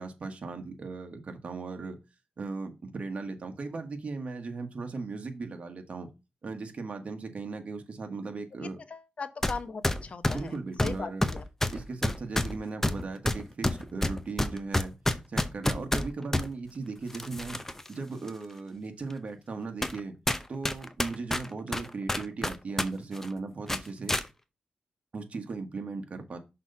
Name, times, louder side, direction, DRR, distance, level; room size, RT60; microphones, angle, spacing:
voice 1, 0.0-2.0 2.4-6.1 6.4-8.8 10.3-11.3 11.7-14.9 15.3-17.6 17.9-20.1 20.5-24.2 25.1-26.4, right 4 dB, 50° right, 1.5 m, -37 dB
voice 2, 8.6-10.6 10.8-11.5, left 4 dB, 50° left, 0.8 m, -38 dB
sound 1, 9.4-9.6 9.8-16.5 17.1-17.9 18.3-18.4 19.1-19.2 19.8-20.0 20.3-22.9 23.1-23.3 23.7-24.3, left 1 dB, 15° left, 0.6 m, -28 dB
6.1 x 3.9 x 5.6 m
wide cardioid pair, 105°, 3 cm